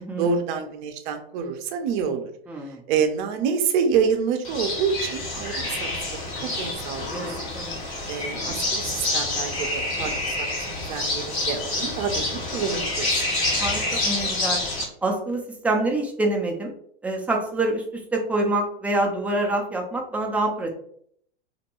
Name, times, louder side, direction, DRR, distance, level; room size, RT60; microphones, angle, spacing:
voice 1, 0.0-2.3 2.9-5.9 6.4-7.0 8.1-10.1 10.4-13.1, right 6 dB, 50° right, 6 dB, 0.6 m, -27 dB
voice 2, 2.5-2.8 7.1-7.8 13.6-14.6 15.0-16.7 17.0-20.7, right 2 dB, 5° right, 0 dB, 0.5 m, -26 dB
sound 1, 4.4-14.9, left 2 dB, 50° left, 1.4 m, -27 dB
2.6 x 2.2 x 2.9 m, 0.65 s
hypercardioid pair, 105°, 30 cm